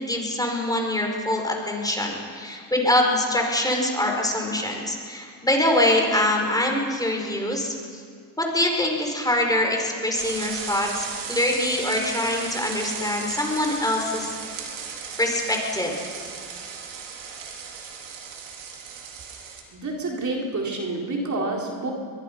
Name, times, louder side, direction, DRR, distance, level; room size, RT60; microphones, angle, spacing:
voice 1, 0.0-8.0 8.4-14.4 15.2-16.2, left 1 dB, 10° left, 1 dB, 5.3 m, -24 dB
sound 1, 10.2-19.6, right 6 dB, 90° right, 3.3 m, -36 dB
voice 2, 19.7-21.9, right 2 dB, 40° right, -1 dB, 4.1 m, -28 dB
22.5 x 22.0 x 5.7 m, 2.1 s
cardioid pair, 85°, 45 cm